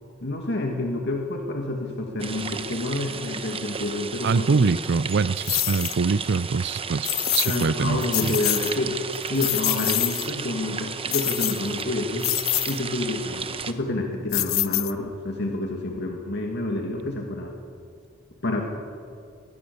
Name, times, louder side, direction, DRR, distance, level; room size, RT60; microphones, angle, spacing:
voice 1, 0.2-4.7 7.4-9.0 9.3-12.4 12.7-17.5 18.4-18.6, left 2 dB, 55° left, 1 dB, 2.3 m, -28 dB
sound 1, 2.2-13.7, right 5 dB, 25° right, 1.0 m, -34 dB
voice 2, 4.2-8.4, right 4 dB, 55° right, 21 dB, 0.5 m, -24 dB
sound 2, 5.4-6.0 7.0-7.7 8.0-8.8 9.2-10.3 11.1-11.8 12.2-12.8 14.3-15.2, left 19 dB, 85° left, 0.7 m, -26 dB
24.0 x 20.5 x 6.9 m, 2.4 s
head